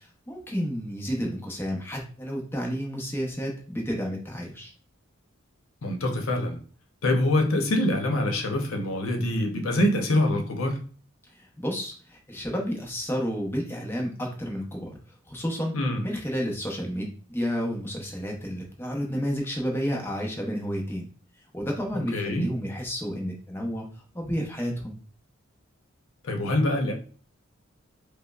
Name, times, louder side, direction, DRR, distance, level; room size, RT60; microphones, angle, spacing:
voice 1, 0.0-4.7 11.3-15.0 15.3-15.7 16.0-21.1 21.5-23.9 24.1-25.0, equal, 10° left, -1 dB, 0.6 m, -31 dB
voice 2, 5.8-6.6 7.0-10.8 15.7-16.0 21.9-22.4 26.2-26.9, left 1 dB, 85° left, 4 dB, 0.7 m, -25 dB
5.2 x 2.0 x 2.3 m, 0.41 s
head